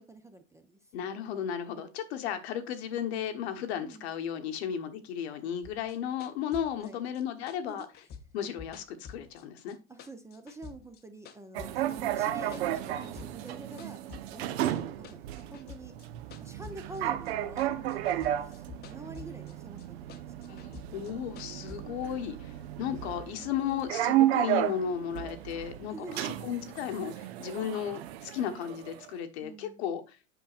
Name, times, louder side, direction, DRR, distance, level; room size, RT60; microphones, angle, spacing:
voice 1, 0.0-0.8 3.8-4.1 6.8-7.0 7.7-7.9 9.9-14.0 14.3-14.4 15.1-16.0 16.4-21.1 25.9-26.3 29.4-29.8, right 2 dB, 10° right, 7 dB, 0.5 m, -47 dB
voice 2, 0.9-7.9 8.3-9.8 20.5-30.2, left 9 dB, 65° left, 7 dB, 1.2 m, -35 dB
sound 1, 5.6-9.7 10.0-12.0 12.2-13.5 13.8-17.3 17.6-19.5 19.8-21.8, left 6 dB, 30° left, 0.7 m, -49 dB
sound 2, 11.5-29.1, right 13 dB, 65° right, 0.7 m, -33 dB
8.0 x 5.5 x 2.4 m, 0.29 s
hypercardioid pair, 110°, 34 cm